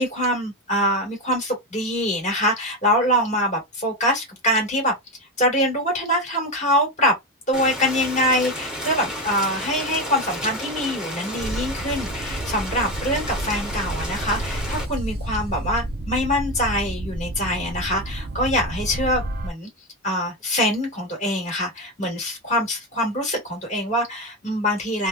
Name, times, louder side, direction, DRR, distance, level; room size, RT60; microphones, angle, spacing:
voice 1, 0.0-4.9 5.4-7.2 7.5-19.7 20.0-25.1, equal, 35° left, 1.6 m, -24 dB
Rain, 7.5-14.8, equal, 5° right, 1.0 m, -32 dB
sound 1, 11.4-19.5, right 1 dB, 50° right, 0.5 m, -30 dB
3.2 x 2.2 x 2.3 m
head